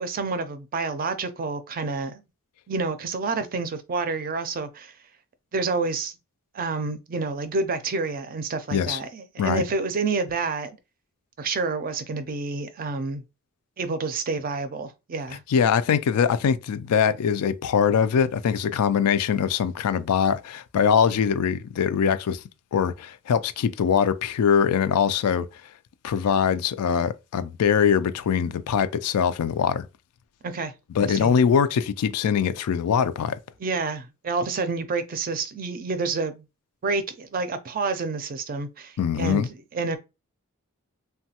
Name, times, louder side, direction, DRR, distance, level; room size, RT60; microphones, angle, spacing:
voice 1, 0.0-2.2 2.7-4.9 5.5-6.1 6.5-10.7 11.4-13.2 13.8-15.4 30.4-30.7 31.0-31.3 33.6-36.4 36.8-39.4 39.7-40.0, right 4 dB, 40° right, 0.4 m, -28 dB
voice 2, 15.5-22.4 22.7-25.5 26.0-29.9 30.9-33.4 39.0-39.5, left 7 dB, 90° left, 0.4 m, -22 dB
3.1 x 2.2 x 2.8 m
head